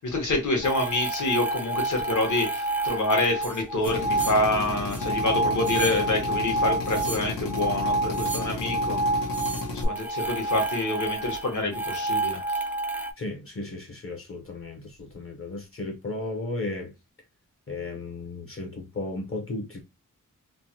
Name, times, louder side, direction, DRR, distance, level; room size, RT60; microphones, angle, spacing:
voice 1, 0.0-9.0 9.7-12.4, left 2 dB, 65° left, 1.1 m, -27 dB
sound 1, 0.6-13.1, right 2 dB, 5° right, 0.3 m, -29 dB
Drill, 3.9-9.9, left 3 dB, 90° left, 0.9 m, -34 dB
voice 2, 13.2-16.9 17.7-19.8, left 2 dB, 40° left, 0.7 m, -35 dB
3.2 x 2.1 x 2.7 m
wide cardioid pair, 125°, 33 cm